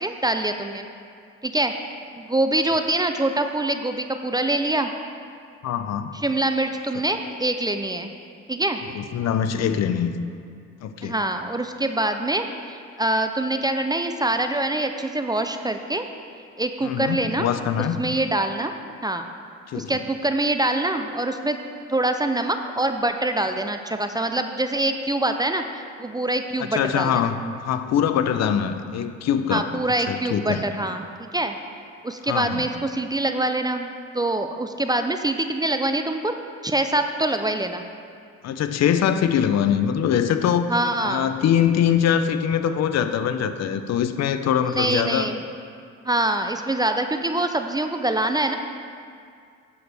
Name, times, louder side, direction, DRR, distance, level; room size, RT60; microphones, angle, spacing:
voice 1, 0.0-0.8 1.4-1.7 2.2-4.9 6.2-8.1 8.5-8.8 11.0-16.1 16.6-17.5 18.0-18.7 19.0-19.3 19.7-21.6 21.9-27.1 29.5-31.6 32.0-36.3 36.6-37.8 40.7-41.3 44.7-45.4 46.0-48.6, right 1 dB, 15° right, 6 dB, 0.4 m, -24 dB
voice 2, 5.6-6.1 8.9-10.1 10.8-11.1 16.8-18.0 19.7-19.9 26.6-29.7 30.1-30.6 32.3-32.7 38.4-40.7 41.1-45.3, left 8 dB, 60° left, 10 dB, 0.6 m, -23 dB
10.5 x 6.9 x 3.4 m, 2.3 s
cardioid pair, 90°, 30 cm